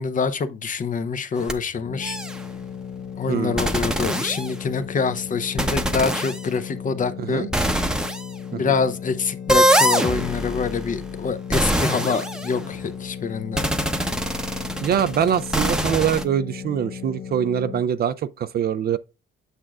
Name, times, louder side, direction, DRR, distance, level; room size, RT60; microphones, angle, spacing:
voice 1, 0.0-2.2 3.2-7.5 8.5-13.6, left 5 dB, 40° left, 0.6 m, -25 dB
sound 1, 1.4-1.5 2.0-2.4 3.6-4.8 5.6-6.4 7.5-8.3 9.5-12.9 13.6-16.2, equal, 5° right, 0.7 m, -24 dB
sound 2, 1.9-17.8, left 7 dB, 80° left, 1.0 m, -36 dB
voice 2, 3.3-3.7 7.2-7.5 8.5-8.8 14.8-19.0, right 9 dB, 50° right, 0.4 m, -24 dB
8.1 x 6.0 x 2.4 m
cardioid pair, 90°, 20 cm